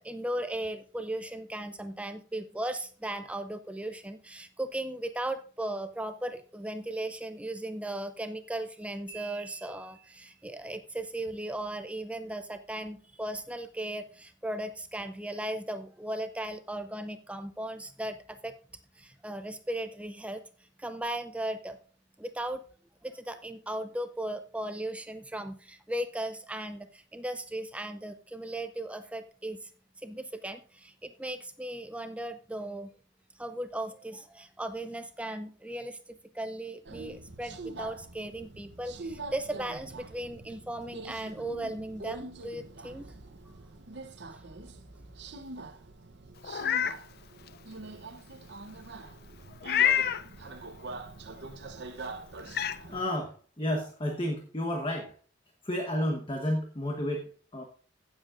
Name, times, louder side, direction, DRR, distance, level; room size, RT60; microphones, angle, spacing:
voice 1, 0.0-18.5 18.9-20.4 20.8-21.8 22.2-22.6 23.0-29.7 30.0-32.9 33.4-43.1 44.3-44.4, right 1 dB, 5° right, 8 dB, 0.4 m, -37 dB
Marimba xylophone, 9.1-10.5, right 7 dB, 85° left, 4.6 m, -49 dB
Subway metro underground, 36.9-53.0, right 2 dB, 60° right, 0.8 m, -44 dB
Meow, 46.4-47.0 47.5-47.6 49.6-50.2 51.8-51.9 52.5-52.8, left 9 dB, 50° left, 0.5 m, -26 dB
voice 2, 52.9-55.1 55.6-57.6, left 1 dB, 25° left, 2 dB, 1.1 m, -31 dB
16.0 x 7.4 x 2.5 m, 0.41 s
head